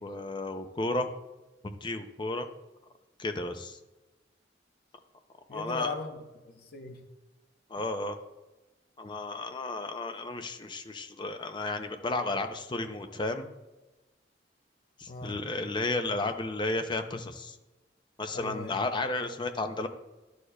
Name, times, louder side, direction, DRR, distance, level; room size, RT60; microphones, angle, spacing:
voice 1, 0.0-1.1 1.6-2.5 3.2-3.8 5.5-5.9 7.7-8.2 9.0-13.5 15.0-17.6 18.2-19.9, left 2 dB, 25° left, 8 dB, 0.5 m, -33 dB
voice 2, 5.5-7.0 15.1-15.4 18.3-18.7, left 3 dB, 55° left, 4 dB, 0.8 m, -39 dB
11.0 x 6.5 x 2.2 m, 1.1 s
head